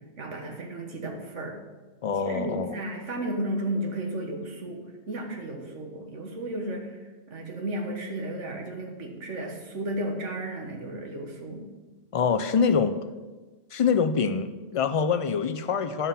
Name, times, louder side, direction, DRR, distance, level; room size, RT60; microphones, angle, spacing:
voice 1, 0.2-1.6 2.2-7.0 7.3-11.6, right 1 dB, 85° right, 2 dB, 1.8 m, -33 dB
voice 2, 2.0-2.8 12.1-13.0 13.7-16.1, left 6 dB, 55° left, 9 dB, 0.3 m, -25 dB
10.5 x 5.6 x 5.7 m, 1.2 s
omnidirectional pair, 1.2 m